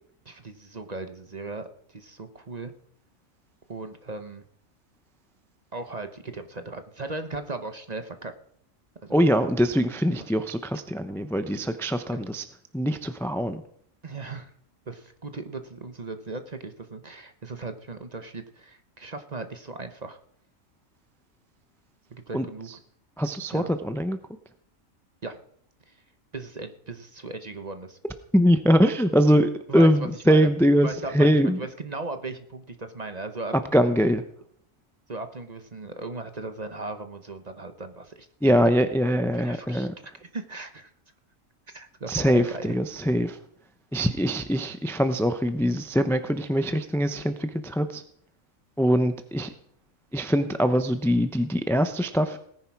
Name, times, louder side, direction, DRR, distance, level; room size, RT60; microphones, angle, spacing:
voice 1, 0.3-2.7 3.7-4.4 5.7-8.3 9.0-9.2 12.1-12.2 14.0-14.5 14.9-20.2 22.1-22.7 23.5-23.7 25.2-25.4 26.3-28.0 29.7-30.5 30.8-33.6 35.1-38.3 38.6-38.7 39.3-40.9 41.7-42.8, right 3 dB, 35° right, 8 dB, 1.0 m, -37 dB
voice 2, 9.1-12.4 12.7-13.6 22.3-22.4 23.2-24.2 28.3-30.9 31.1-31.6 33.7-34.2 38.4-39.9 42.1-43.4 43.9-48.0 48.8-49.5 50.1-52.4, equal, 5° left, 9 dB, 0.5 m, -22 dB
18.0 x 10.0 x 4.7 m, 0.66 s
omnidirectional pair, 1.5 m